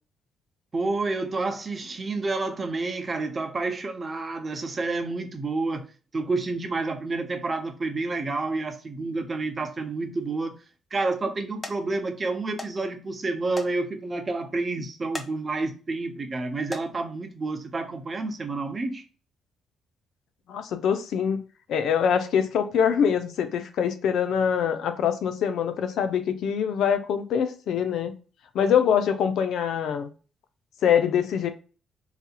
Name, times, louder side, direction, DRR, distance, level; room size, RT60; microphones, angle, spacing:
voice 1, 0.7-5.9 6.1-10.6 10.9-19.0, right 3 dB, 35° right, 0.7 m, -29 dB
sound 1, 10.2-10.6 11.1-11.3 11.6-11.8 12.6-12.7 13.0-13.1 13.5-13.7 14.1-14.2 15.0-15.3 15.8-16.1 16.5-16.9 17.8-18.0 18.4-18.5, left 2 dB, 20° left, 0.7 m, -38 dB
voice 2, 20.5-21.4 21.7-28.1 28.5-30.1 30.8-31.5, left 8 dB, 75° left, 0.5 m, -24 dB
4.0 x 2.8 x 2.3 m
cardioid pair, 90°, 0 cm